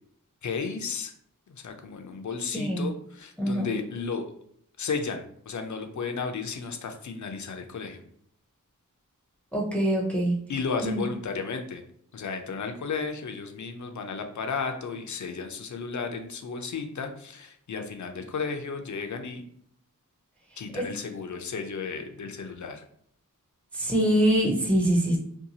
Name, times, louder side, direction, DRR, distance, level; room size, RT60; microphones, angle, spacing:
voice 1, 0.4-1.1 1.5-4.2 4.8-8.0 10.5-11.8 12.1-19.5 20.6-22.8, left 5 dB, 60° left, 5 dB, 0.5 m, -33 dB
voice 2, 2.5-2.9 3.4-3.7 9.5-10.4 10.8-11.0 20.7-20.8 23.7-25.2, right 1 dB, 5° left, -2 dB, 0.5 m, -24 dB
2.7 x 2.3 x 2.7 m, 0.67 s
wide cardioid pair, 60°, 34 cm